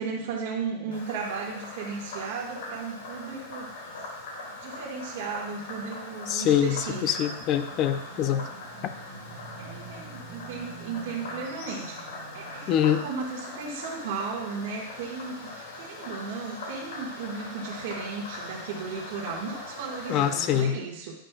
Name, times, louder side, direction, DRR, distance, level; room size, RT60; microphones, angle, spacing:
voice 1, 0.0-4.0 4.5-7.1 9.6-12.0 12.3-21.1, right 5 dB, 60° right, -3 dB, 1.7 m, -35 dB
Frog, 0.9-20.6, left 2 dB, 90° left, 2.5 m, -41 dB
voice 2, 6.3-8.5 8.8-8.9 12.7-13.0 20.1-20.8, left 10 dB, 30° left, 11 dB, 0.5 m, -24 dB
sound 1, 7.7-13.2, right 4 dB, 5° right, 1.5 m, -47 dB
9.9 x 5.3 x 2.4 m, 0.81 s
supercardioid pair, 160°, 0 cm